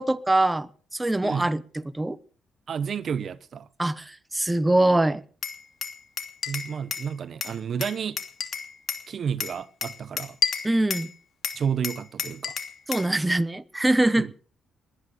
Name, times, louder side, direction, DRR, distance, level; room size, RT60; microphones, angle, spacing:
voice 1, 0.0-1.6 1.9-2.2 3.8-5.2 10.6-11.1 12.9-14.3, right 1 dB, 10° right, 1.0 m, -23 dB
voice 2, 2.7-3.7 6.5-8.2 9.1-10.4 11.5-12.5 14.2-14.3, right 7 dB, 55° right, 0.8 m, -31 dB
Glass, 5.4-7.1 7.4-9.1 9.4-11.1 11.4-13.1, left 7 dB, 60° left, 2.7 m, -31 dB
20.5 x 10.0 x 6.9 m
cardioid pair, 90°, 0 cm